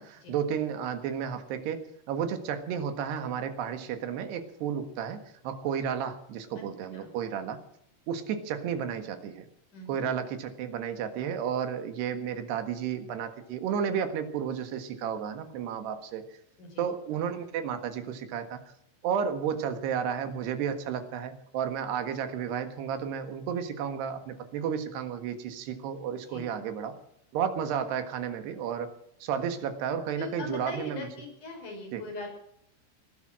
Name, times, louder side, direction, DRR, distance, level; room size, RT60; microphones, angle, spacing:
voice 1, 0.0-1.8 2.1-7.6 8.1-9.5 9.9-16.2 16.8-18.6 19.0-26.9 27.3-28.9 29.2-31.1 31.9-32.0, right 8 dB, 85° right, 8 dB, 3.7 m, -32 dB
voice 2, 9.7-10.0 16.6-16.9 26.3-26.5 30.2-32.3, left 2 dB, 50° left, 2 dB, 6.6 m, -40 dB
19.0 x 12.5 x 6.2 m, 0.74 s
omnidirectional pair, 4.6 m